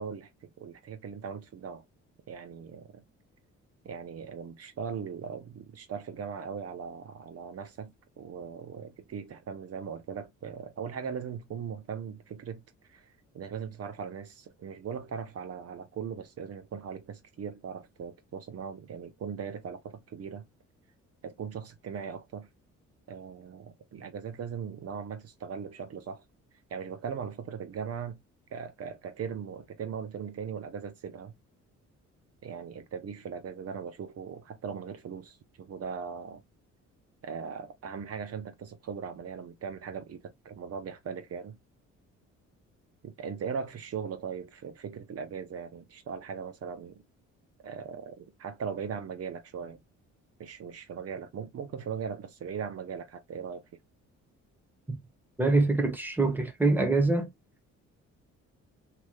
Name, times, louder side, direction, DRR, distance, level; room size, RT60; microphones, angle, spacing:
voice 1, 0.0-1.8 2.3-3.0 3.8-7.9 8.2-12.6 12.9-20.5 21.2-22.5 23.1-26.2 26.7-28.2 28.5-31.3 32.4-36.4 37.2-41.6 43.0-47.0 47.6-49.8 50.4-53.6, right 6 dB, 55° right, 0.9 m, -39 dB
voice 2, 55.4-57.3, right 2 dB, 5° right, 1.1 m, -24 dB
3.2 x 3.0 x 2.3 m
cardioid pair, 90°, 30 cm